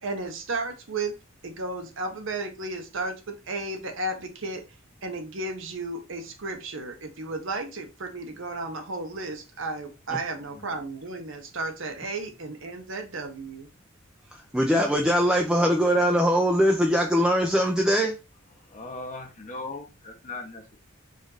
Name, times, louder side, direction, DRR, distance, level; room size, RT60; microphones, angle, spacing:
voice 1, 0.0-1.2 1.4-4.6 5.0-13.7, right 2 dB, 65° right, 5 dB, 0.9 m, -33 dB
voice 2, 10.4-10.7 18.6-20.8, left 2 dB, 40° left, 4 dB, 0.9 m, -39 dB
voice 3, 14.5-18.1, equal, 5° right, 1 dB, 0.4 m, -21 dB
5.0 x 2.6 x 3.9 m, 0.28 s
head